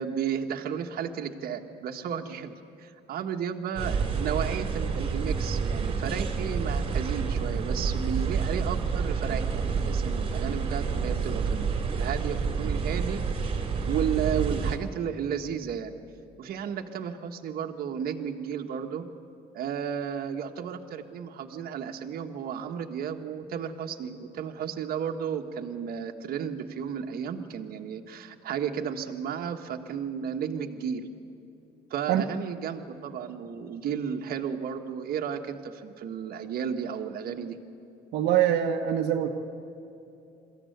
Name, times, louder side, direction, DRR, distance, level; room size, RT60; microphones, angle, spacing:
voice 1, 0.0-15.9 16.4-19.0 19.5-31.1 31.9-37.6, right 8 dB, 60° right, 4 dB, 1.5 m, -33 dB
sound 1, 3.8-14.8, right 5 dB, 35° right, 2.5 m, -29 dB
voice 2, 38.1-39.3, right 10 dB, 80° right, 2 dB, 1.2 m, -24 dB
22.5 x 14.5 x 9.4 m, 2.8 s
cardioid pair, 110°, 17 cm